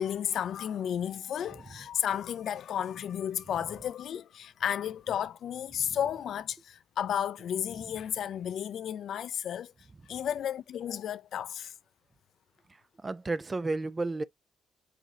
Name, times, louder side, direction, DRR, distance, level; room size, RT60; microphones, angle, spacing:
voice 1, 0.0-9.7 10.1-11.7, left 9 dB, 65° left, 0.4 m, -33 dB
voice 2, 13.0-14.2, right 3 dB, 25° right, 0.4 m, -32 dB
5.0 x 2.8 x 3.6 m
cardioid pair, 90°, 0 cm